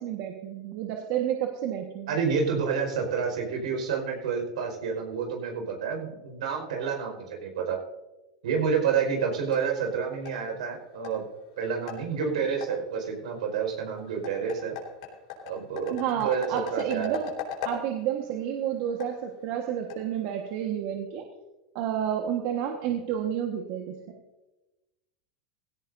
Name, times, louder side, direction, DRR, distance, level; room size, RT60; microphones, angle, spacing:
voice 1, 0.0-2.1 15.9-17.3 17.6-21.2 21.7-23.9, right 9 dB, 60° right, 3 dB, 1.5 m, -30 dB
voice 2, 2.1-7.8 8.4-11.2 11.6-14.7 15.4-17.2 22.8-22.9, right 6 dB, 85° right, 2 dB, 5.0 m, -29 dB
sound 1, 8.9-20.7, left 7 dB, 75° left, 4.0 m, -42 dB
17.0 x 16.5 x 2.7 m, 1.1 s
hypercardioid pair, 110°, 4 cm